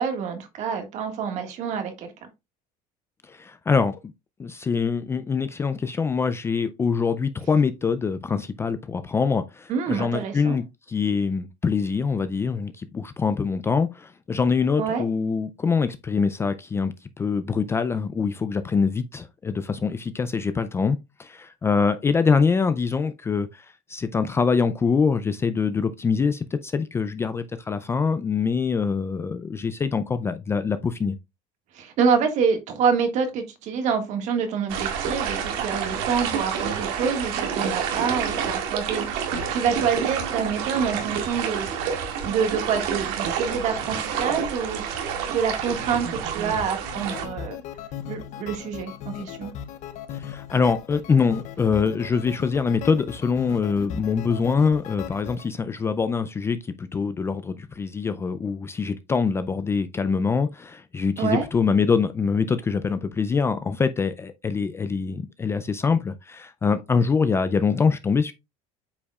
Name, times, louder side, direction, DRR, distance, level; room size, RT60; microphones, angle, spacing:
voice 1, 0.0-2.3 9.7-10.6 14.8-15.0 31.7-41.7 42.2-44.8 45.2-47.6 48.1-49.5 61.2-61.5, right 6 dB, 50° right, 1.7 m, -27 dB
voice 2, 3.3-4.0 4.4-31.2 50.1-68.3, left 5 dB, 15° left, 0.4 m, -24 dB
sound 1, 34.7-47.3, right 7 dB, 70° right, 2.0 m, -28 dB
sound 2, 46.8-55.5, left 9 dB, 50° left, 0.7 m, -38 dB
8.3 x 5.1 x 2.3 m
cardioid pair, 155°, 16 cm